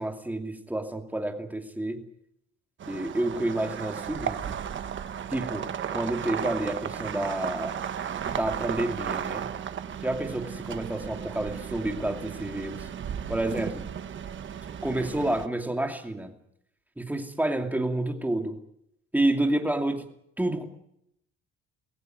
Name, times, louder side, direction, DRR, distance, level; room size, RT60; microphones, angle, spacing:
voice 1, 0.0-2.0 2.9-4.4 5.3-7.8 8.3-9.5 10.0-12.8 13.3-13.8 14.8-16.3 17.0-18.6 19.1-20.0 20.4-20.7, right 1 dB, 5° right, 4 dB, 2.6 m, -29 dB
sound 1, 2.8-15.5, right 8 dB, 40° right, 1.4 m, -35 dB
24.0 x 17.0 x 9.3 m, 0.76 s
cardioid pair, 160°, 29 cm